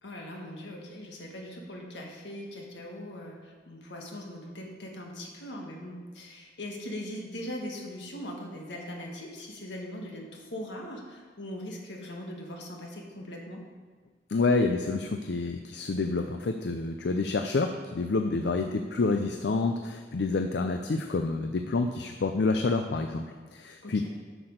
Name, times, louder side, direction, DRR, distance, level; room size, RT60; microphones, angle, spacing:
voice 1, 0.0-13.6 18.3-18.7 23.8-24.1, left 1 dB, 80° left, 0 dB, 1.7 m, -40 dB
voice 2, 14.3-18.7 18.9-23.2 23.5-24.0, left 3 dB, 65° left, 5 dB, 0.5 m, -28 dB
7.9 x 6.0 x 6.5 m, 1.5 s
head